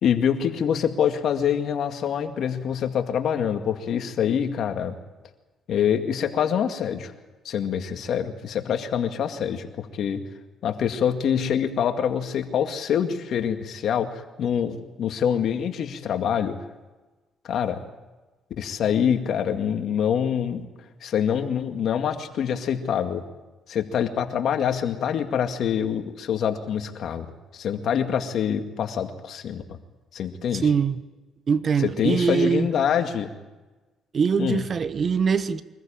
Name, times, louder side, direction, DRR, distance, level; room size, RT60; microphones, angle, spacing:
voice 1, 0.0-5.0 5.7-7.1 7.4-10.2 10.6-16.5 17.4-17.8 18.6-20.7 21.0-23.2 23.7-29.6 30.1-30.6 32.0-33.3 34.4-34.6, left 8 dB, 65° left, 2.1 m, -25 dB
voice 2, 30.5-31.0 31.5-32.7 34.1-35.6, right 6 dB, 45° right, 1.1 m, -22 dB
24.0 x 14.5 x 8.9 m
cardioid pair, 80°, 0 cm